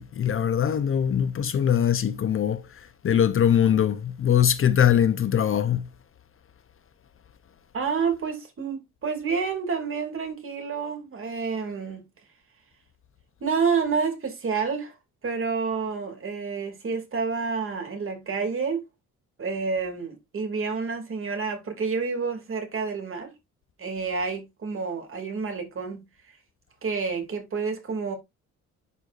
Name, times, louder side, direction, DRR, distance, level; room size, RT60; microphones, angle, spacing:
voice 1, 0.0-2.6 3.0-5.9, left 9 dB, 45° left, 0.7 m, -22 dB
voice 2, 7.7-12.0 13.4-14.9 15.2-18.9 19.4-23.3 23.8-26.0 26.8-28.1, right 5 dB, 45° right, 2.6 m, -29 dB
11.0 x 4.5 x 2.5 m
cardioid pair, 90°, 30 cm